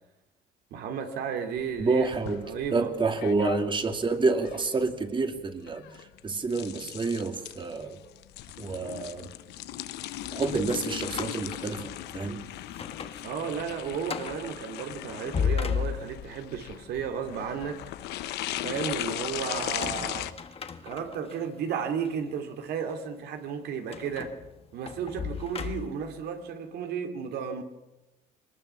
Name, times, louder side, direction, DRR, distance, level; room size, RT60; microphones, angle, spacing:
voice 1, 0.7-2.1 2.4-2.9 13.2-17.9 18.6-20.3 20.8-24.3 24.7-27.6, right 7 dB, 75° right, 6 dB, 2.9 m, -33 dB
sound 1, 1.5-20.3, left 14 dB, 85° left, 1.1 m, -38 dB
voice 2, 1.8-8.0 8.6-9.3 10.3-12.5, right 3 dB, 30° right, 6 dB, 2.4 m, -28 dB
sound 2, 10.2-12.3 12.7-13.2 13.6-13.7 14.1-14.5 15.1-16.4 19.6-21.4 22.0-22.1 23.9-26.1, left 7 dB, 35° left, 1.5 m, -35 dB
22.5 x 19.5 x 7.1 m, 0.99 s
cardioid pair, 110°, 17 cm